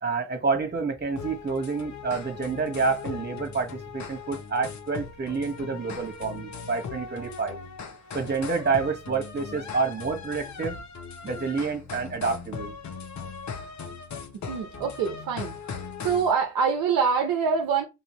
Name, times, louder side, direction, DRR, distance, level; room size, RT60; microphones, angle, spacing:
voice 1, 0.0-7.6 8.1-10.8 11.2-12.7 14.7-14.8, right 4 dB, 30° right, 1.4 m, -28 dB
sound 1, 1.2-16.3, left 5 dB, 50° left, 0.9 m, -39 dB
voice 2, 14.5-15.5 16.0-17.9, right 6 dB, 65° right, 0.9 m, -25 dB
5.6 x 2.6 x 3.1 m
hypercardioid pair, 50°, 36 cm